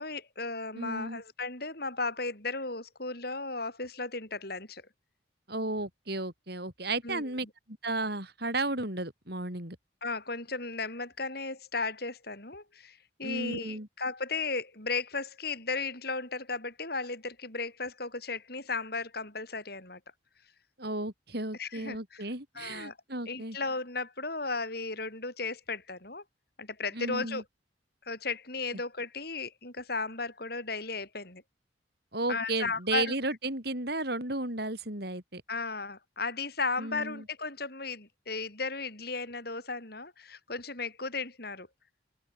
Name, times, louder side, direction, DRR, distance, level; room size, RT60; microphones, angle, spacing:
voice 1, 0.0-4.8 7.0-7.5 10.0-20.0 21.6-22.3 22.6-23.0 23.3-26.2 26.6-27.4 28.1-31.4 32.3-33.1 35.5-41.7, left 3 dB, 50° left, 6.9 m, -35 dB
voice 2, 0.8-1.2 5.5-9.8 13.2-13.9 20.8-23.6 26.9-27.4 32.1-35.4 36.8-37.2, right 2 dB, 55° right, 6.2 m, -34 dB
open air
head